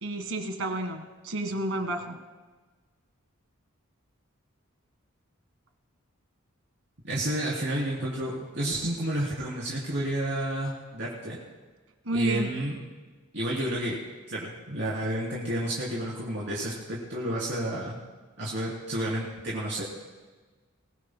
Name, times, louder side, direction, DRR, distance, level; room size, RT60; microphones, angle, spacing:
voice 1, 0.0-2.2 12.1-12.5, right 2 dB, 90° right, 7 dB, 1.7 m, -31 dB
voice 2, 7.0-11.4 12.1-12.8 13.3-14.0 14.3-18.0 18.4-19.8, right 1 dB, 60° right, -6 dB, 3.1 m, -30 dB
22.0 x 20.0 x 2.2 m, 1.3 s
head